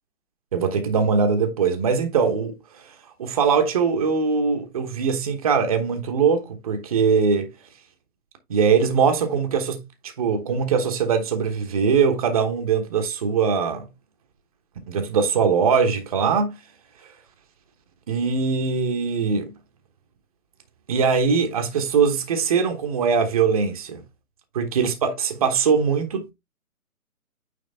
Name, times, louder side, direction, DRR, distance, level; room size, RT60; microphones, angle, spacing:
voice 1, 0.5-2.8 3.2-7.5 8.5-13.9 14.9-16.6 18.1-19.5 20.9-24.0 24.5-26.3, right 5 dB, 25° right, 1.0 m, -21 dB
9.0 x 3.5 x 3.3 m
figure-of-eight pair, 150°, 44 cm